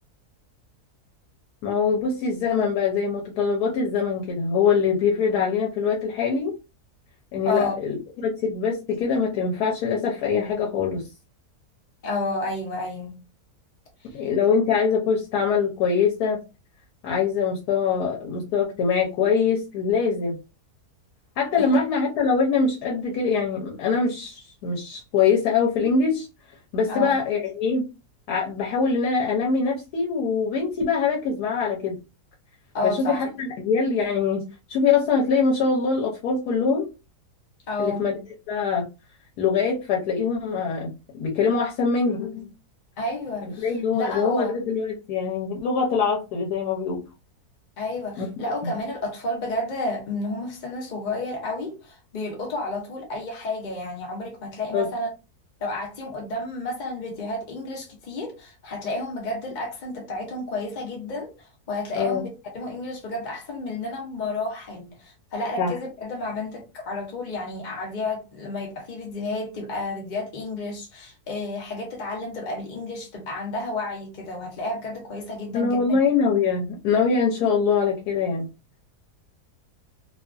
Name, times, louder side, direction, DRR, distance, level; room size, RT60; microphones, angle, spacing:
voice 1, 1.6-6.5 7.3-8.0 8.2-11.0 14.1-16.4 17.0-20.4 21.4-26.3 26.7-27.8 28.3-31.9 32.8-34.4 34.7-36.9 37.8-38.2 38.5-38.8 39.4-42.5 43.6-47.0 48.2-48.3 48.6-48.7 54.7-54.9 61.9-62.2 65.6-65.7 75.5-78.5, left 5 dB, 75° left, 1.1 m, -23 dB
voice 2, 12.0-13.2 14.1-14.2 21.6-21.7 26.9-27.2 32.7-33.3 37.7-38.1 43.0-44.6 47.8-55.1 55.6-62.3 62.5-76.0, left 2 dB, 55° left, 0.5 m, -31 dB
2.8 x 2.4 x 2.3 m
omnidirectional pair, 1.7 m